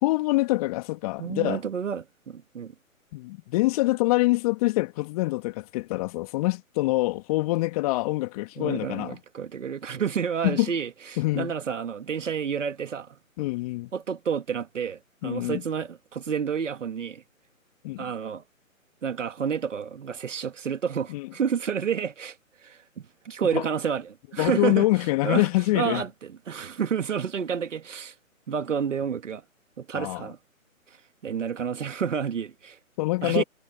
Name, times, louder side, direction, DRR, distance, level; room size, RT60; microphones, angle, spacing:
voice 1, 0.0-1.6 3.1-9.2 10.4-10.7 11.2-11.5 13.4-13.9 15.2-15.6 17.8-18.1 21.1-21.3 23.5-23.6 24.4-26.0 29.9-30.3 33.0-33.4, left 20 dB, 25° left, 2.6 m, -25 dB
voice 2, 1.2-2.7 8.6-13.2 13.9-17.2 18.0-18.4 19.0-22.4 22.6-24.9 25.2-25.5 25.7-28.1 28.5-29.4 29.8-30.4 31.2-32.8 33.2-33.4, right 7 dB, 60° right, 2.2 m, -30 dB
figure-of-eight pair, 140°, 42 cm